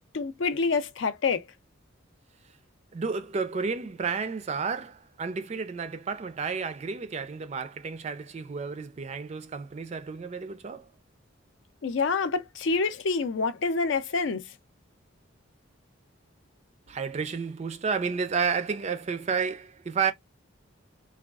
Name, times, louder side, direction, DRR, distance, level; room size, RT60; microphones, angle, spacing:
voice 1, 0.1-1.4 11.8-14.4, left 4 dB, 65° left, 0.4 m, -27 dB
voice 2, 2.9-10.9 16.9-20.1, right 5 dB, 35° right, 0.3 m, -31 dB
3.4 x 2.3 x 2.3 m
head